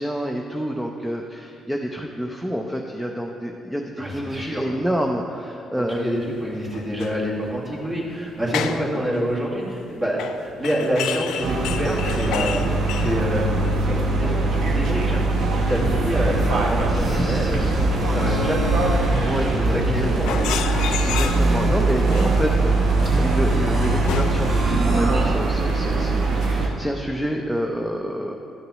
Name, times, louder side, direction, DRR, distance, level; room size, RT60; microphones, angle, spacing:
voice 1, 0.0-6.1 8.5-9.0 16.9-18.5 19.2-20.1 21.0-22.7 23.0-28.4, equal, 5° right, 1 dB, 0.6 m, -28 dB
voice 2, 4.0-4.7 5.7-17.6 18.0-18.8 19.5-20.4, equal, 30° right, -5 dB, 2.0 m, -27 dB
sound 1, 5.9-6.0 6.7-7.2 7.4-7.7 8.4-8.9 9.1-9.5 10.2-14.0 14.2-15.1 15.4-16.3 16.7-16.8 17.1-17.2 17.5-19.8 20.1-21.7 22.1-24.7 25.1-25.2, left 9 dB, 85° left, 0.3 m, -32 dB
sound 2, 11.4-26.7, right 3 dB, 75° right, 0.9 m, -22 dB
sound 3, 15.8-25.3, right 1 dB, 55° right, 1.2 m, -25 dB
11.5 x 6.6 x 3.1 m, 2.6 s
cardioid pair, 85°, 0 cm